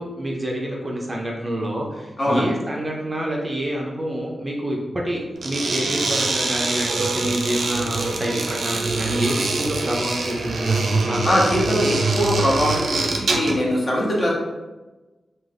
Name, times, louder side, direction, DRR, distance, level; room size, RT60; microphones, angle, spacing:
voice 1, 0.0-11.5, right 1 dB, 20° right, -2 dB, 0.4 m, -27 dB
sound 1, 5.4-13.6, right 3 dB, 85° right, 0.4 m, -24 dB
voice 2, 11.2-14.3, equal, 40° left, -4 dB, 0.7 m, -21 dB
2.4 x 2.3 x 3.3 m, 1.1 s
wide cardioid pair, 130°, 0 cm